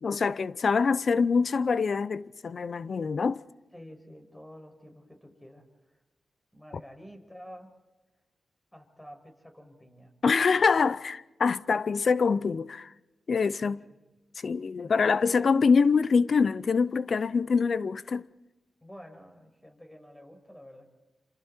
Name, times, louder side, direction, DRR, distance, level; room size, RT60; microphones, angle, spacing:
voice 1, 0.0-3.4 10.2-12.9 13.3-13.8 14.3-18.3, left 5 dB, 60° left, 0.7 m, -25 dB
voice 2, 3.7-6.0 6.5-7.7 8.7-10.1 10.5-10.7 13.6-13.8 18.8-20.9, equal, 10° left, 6.4 m, -49 dB
28.5 x 27.5 x 4.5 m
supercardioid pair, 45°, 0 cm